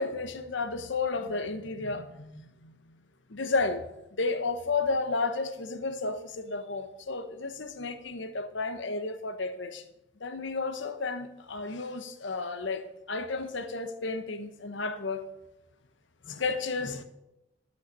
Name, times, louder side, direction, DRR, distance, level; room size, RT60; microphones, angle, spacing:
voice 1, 0.0-2.7 3.3-3.8 4.2-9.8 10.2-15.3 16.2-17.0, left 3 dB, 70° left, 1.1 m, -32 dB
12.0 x 6.4 x 6.6 m
head